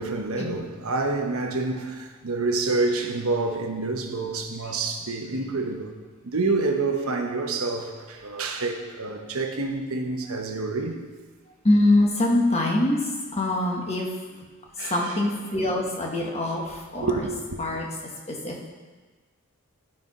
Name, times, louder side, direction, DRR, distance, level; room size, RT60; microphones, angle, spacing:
voice 1, 0.0-5.9 6.2-11.0 14.8-15.2 17.0-17.3, right 3 dB, 80° right, 1.0 m, -28 dB
voice 2, 11.6-13.0 13.3-14.1 14.9-17.1 17.6-17.9 18.3-18.5, left 1 dB, 30° left, 1.2 m, -23 dB
12.0 x 4.6 x 5.3 m
head